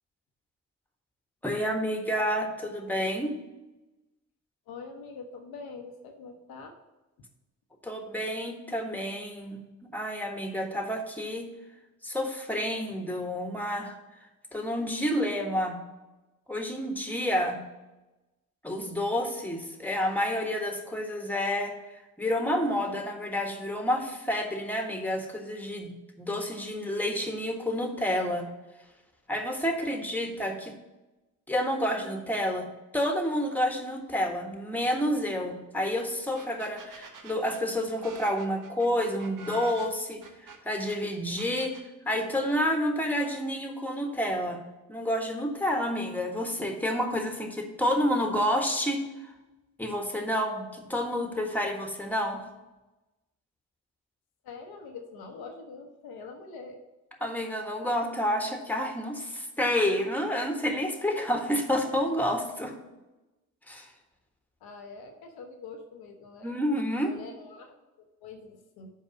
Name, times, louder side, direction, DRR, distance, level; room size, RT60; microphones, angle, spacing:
voice 1, 1.4-3.4 7.8-11.5 12.0-13.9 14.5-15.8 16.5-17.6 18.6-21.7 22.2-25.9 26.2-28.5 29.3-30.7 31.5-32.7 32.9-40.2 40.6-41.7 42.0-44.6 44.9-49.0 49.8-52.5 57.2-62.7 63.7-63.9 66.4-67.1, equal, 5° left, 3 dB, 1.5 m, -29 dB
voice 2, 4.7-6.8 54.4-56.8 62.9-63.0 64.6-66.5 67.0-67.8 68.2-68.9, left 4 dB, 60° left, 4 dB, 1.0 m, -44 dB
sound 1, 36.0-36.1 36.3-41.0 41.4-41.9, right 5 dB, 50° right, 1.2 m, -46 dB
5.5 x 4.8 x 6.4 m, 1.1 s
hypercardioid pair, 40°, 41 cm